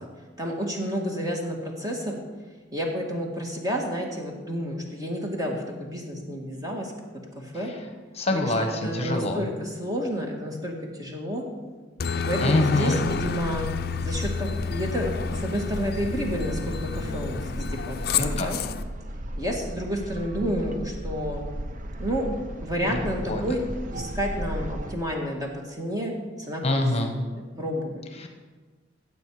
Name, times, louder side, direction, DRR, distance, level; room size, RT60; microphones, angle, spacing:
voice 1, 0.4-2.2 2.7-6.9 7.4-7.7 8.3-8.4 8.8-11.4 12.2-13.7 14.0-18.6 19.4-21.4 22.0-22.3 22.6-23.6 23.9-26.8 27.1-28.0, equal, 20° right, 0 dB, 1.8 m, -30 dB
voice 2, 8.1-9.5 12.4-13.1 18.2-18.5 22.8-23.4 26.6-27.1 28.2-28.3, left 2 dB, 35° left, 4 dB, 1.2 m, -25 dB
Aircraft, 12.0-18.8, left 5 dB, 55° left, 0.5 m, -30 dB
sound 1, 13.0-25.0, right 1 dB, 45° right, 0.7 m, -35 dB
16.0 x 7.4 x 4.8 m, 1.4 s
head